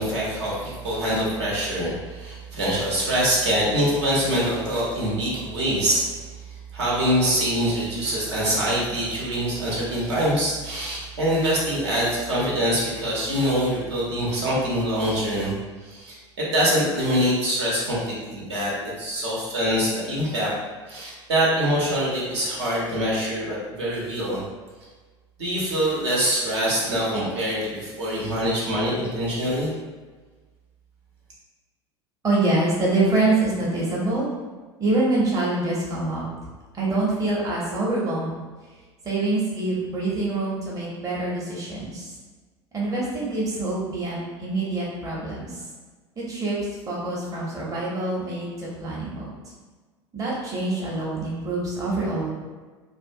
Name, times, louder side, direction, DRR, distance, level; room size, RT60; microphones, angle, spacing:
voice 1, 0.0-6.0 6.7-15.5 15.9-18.7 19.0-20.5 20.9-24.4 25.4-29.7, equal, 65° right, -6 dB, 0.8 m, -24 dB
voice 2, 32.2-34.3 34.8-36.2 36.7-38.3 39.0-42.1 42.7-45.6 46.2-46.6 46.9-49.3 50.1-52.3, right 2 dB, 20° right, -5 dB, 0.7 m, -25 dB
2.4 x 2.1 x 2.6 m, 1.4 s
figure-of-eight pair, 75°, 15 cm